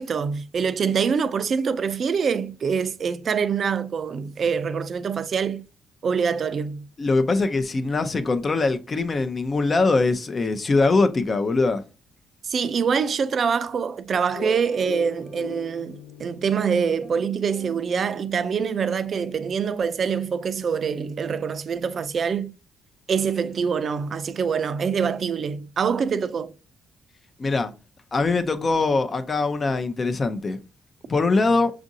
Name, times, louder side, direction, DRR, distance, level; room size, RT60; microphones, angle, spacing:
voice 1, 0.0-5.6 6.0-6.9 12.4-22.5 23.1-26.5, right 6 dB, 50° right, 0.4 m, -25 dB
voice 2, 7.0-11.8 27.4-27.7 28.1-30.6 31.1-31.7, left 3 dB, 35° left, 0.6 m, -22 dB
sound 1, 14.4-18.9, left 2 dB, 65° left, 1.2 m, -39 dB
6.1 x 2.5 x 2.7 m
cardioid pair, 90°, 0 cm